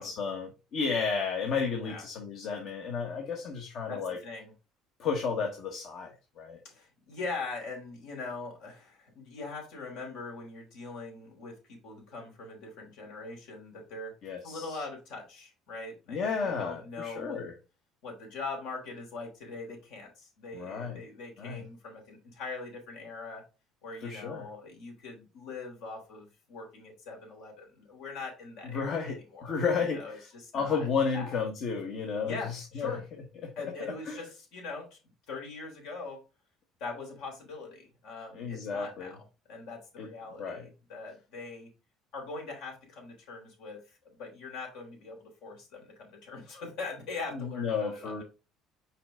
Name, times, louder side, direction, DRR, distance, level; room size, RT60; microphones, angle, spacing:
voice 1, 0.0-4.2 5.0-6.6 14.2-14.8 16.1-17.5 20.5-21.0 21.4-21.6 24.0-24.5 28.7-30.3 30.5-32.9 33.4-33.5 33.8-34.2 38.3-39.1 40.0-40.1 40.4-40.6 47.3-48.2, left 5 dB, 60° left, 2 dB, 1.4 m, -32 dB
voice 2, 3.9-4.5 6.6-11.6 11.8-17.4 18.0-23.4 23.8-29.6 29.9-30.9 31.1-31.4 32.2-33.0 33.6-35.0 35.3-36.2 36.8-39.2 39.5-41.7 42.1-48.2, left 3 dB, 80° left, 1 dB, 3.7 m, -42 dB
5.7 x 4.6 x 3.7 m, 0.30 s
supercardioid pair, 95°, 0 cm